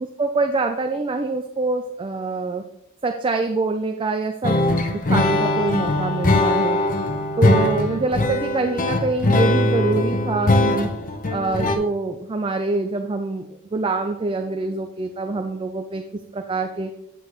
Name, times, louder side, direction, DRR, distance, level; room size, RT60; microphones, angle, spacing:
voice 1, 0.0-2.6 3.0-4.6 4.9-6.8 7.4-10.9 11.3-16.9, right 3 dB, 25° right, 6 dB, 0.4 m, -25 dB
sound 1, 4.4-11.8, left 2 dB, 40° left, 0.7 m, -20 dB
8.4 x 7.9 x 3.0 m, 0.84 s
head